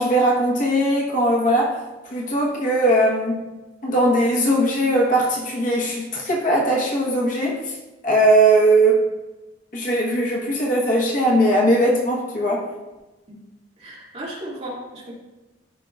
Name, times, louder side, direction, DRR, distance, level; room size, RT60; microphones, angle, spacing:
voice 1, 0.0-3.5 3.8-7.8 8.0-9.1 9.7-12.7, right 1 dB, 45° left, -2 dB, 1.1 m, -19 dB
voice 2, 13.8-15.1, right 1 dB, 35° right, -5 dB, 2.1 m, -35 dB
12.0 x 5.3 x 2.3 m, 1.1 s
head